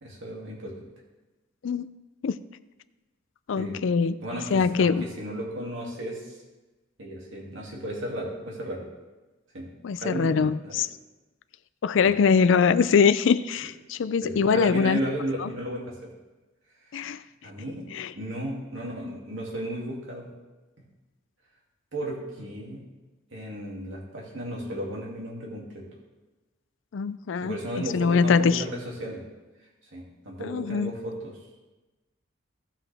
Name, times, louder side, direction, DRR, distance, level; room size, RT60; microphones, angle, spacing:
voice 1, 0.0-0.8 3.6-3.9 4.2-6.4 7.0-8.8 9.5-10.8 14.2-16.1 17.4-20.3 20.8-20.9 21.9-22.8 23.3-25.8 27.4-29.2 29.9-31.4, right 1 dB, 75° right, -3 dB, 2.6 m, -34 dB
voice 2, 3.5-4.2 4.5-5.0 9.8-10.9 11.8-15.0 15.4-15.5 16.9-17.2 17.9-18.1 26.9-27.6 27.9-28.6 30.4-30.9, left 5 dB, 75° left, 14 dB, 0.4 m, -22 dB
17.0 x 5.7 x 3.5 m, 1.1 s
head